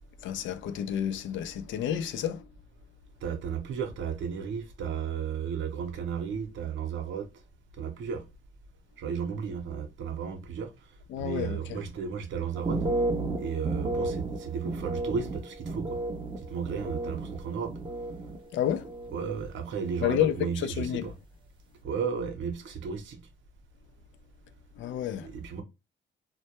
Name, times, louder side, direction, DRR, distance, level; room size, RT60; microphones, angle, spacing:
voice 1, 0.2-2.5 11.1-11.8 18.5-18.9 20.0-21.1 24.8-25.3, left 10 dB, 75° left, 0.4 m, -30 dB
voice 2, 3.2-7.3 7.8-8.2 9.0-10.7 11.2-12.8 13.4-16.0 16.4-17.7 19.1-21.1 21.8-23.2 25.2-25.6, right 6 dB, 70° right, 0.7 m, -34 dB
sound 1, 12.5-18.4 18.6-19.4 19.7-20.1, right 2 dB, 25° right, 0.5 m, -33 dB
2.2 x 2.1 x 2.8 m
cardioid pair, 90°, 20 cm